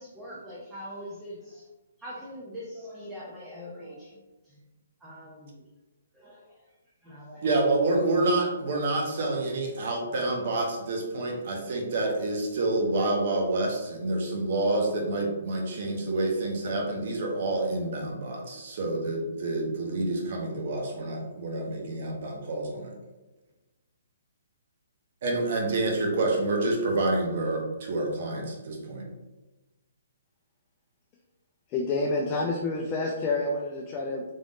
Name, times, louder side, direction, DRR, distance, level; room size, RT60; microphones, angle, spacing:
voice 1, 0.0-1.7 2.0-4.6 5.0-5.6 6.1-6.6 7.0-7.5, equal, 10° right, -7 dB, 0.8 m, -43 dB
voice 2, 7.4-22.9 25.2-29.0, right 2 dB, 55° right, 0 dB, 0.9 m, -28 dB
voice 3, 31.7-34.2, left 3 dB, 25° left, -1 dB, 0.4 m, -28 dB
3.7 x 3.4 x 2.5 m, 1.1 s
figure-of-eight pair, 130°, 0 cm